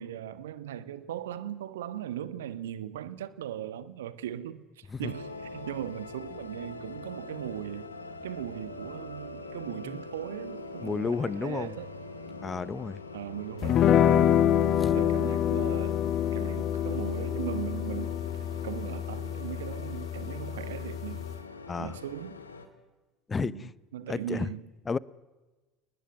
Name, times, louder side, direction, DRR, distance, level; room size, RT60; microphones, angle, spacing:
voice 1, 0.0-7.9 8.2-11.9 13.1-14.4 14.9-16.0 16.3-18.2 18.6-21.3 21.8-22.4 23.4-24.7, right 11 dB, 75° right, 1.5 m, -38 dB
sound 1, 5.0-22.7, left 3 dB, 85° left, 2.2 m, -44 dB
voice 2, 10.8-11.7 12.4-13.0 14.8-15.0 21.7-22.0 23.3-23.7 24.1-24.5 24.9-25.0, left 5 dB, 25° left, 0.9 m, -32 dB
sound 2, 13.6-21.4, left 10 dB, 45° left, 1.6 m, -26 dB
29.0 x 20.0 x 9.6 m
figure-of-eight pair, 70°, 0 cm